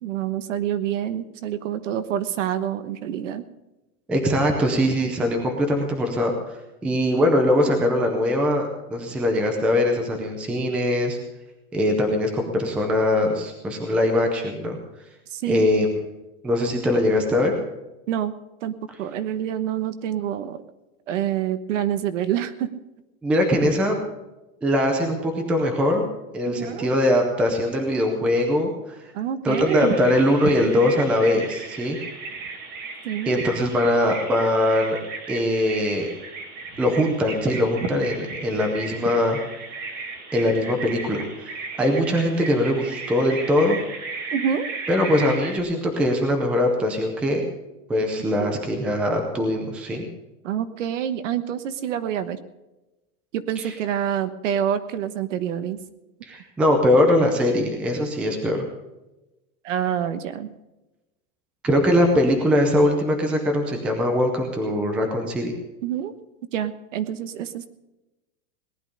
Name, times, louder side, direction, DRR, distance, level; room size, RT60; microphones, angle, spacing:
voice 1, 0.0-3.5 15.3-15.7 18.1-18.3 18.6-20.6 21.1-22.7 26.5-26.9 29.1-30.0 33.0-33.4 44.3-44.7 48.4-48.6 50.4-52.4 53.3-55.8 59.6-60.5 65.8-66.1 66.5-67.7, right 10 dB, 55° right, 12 dB, 1.2 m, -27 dB
voice 2, 4.1-6.3 6.8-11.2 11.7-14.8 15.5-15.9 16.4-17.5 23.2-24.0 24.6-26.1 26.3-29.0 29.4-32.0 33.3-35.0 35.3-36.1 36.8-39.4 40.3-41.5 41.8-43.8 44.9-47.4 47.9-50.0 53.6-53.7 56.2-58.7 61.6-65.5, left 1 dB, 5° right, 3 dB, 0.6 m, -21 dB
Bird vocalization bird call bird song, 29.5-45.6, right 4 dB, 20° right, 1.6 m, -35 dB
18.5 x 11.0 x 5.3 m, 1.0 s
supercardioid pair, 180°, 44 cm